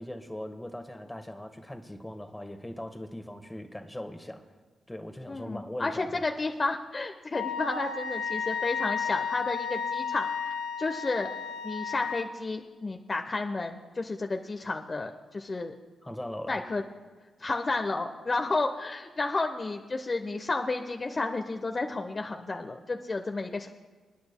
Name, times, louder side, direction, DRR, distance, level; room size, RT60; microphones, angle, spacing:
voice 1, 0.0-4.4 4.9-6.2 16.0-16.6, left 1 dB, 15° left, 6 dB, 1.4 m, -40 dB
voice 2, 5.3-10.3 10.8-11.3 11.6-15.7 16.5-16.8 17.4-23.7, left 3 dB, 40° left, 4 dB, 0.8 m, -31 dB
Wind instrument woodwind instrument, 7.3-12.3, left 6 dB, 80° left, 0.8 m, -33 dB
28.0 x 9.5 x 2.2 m, 1.4 s
supercardioid pair, 45°, 0 cm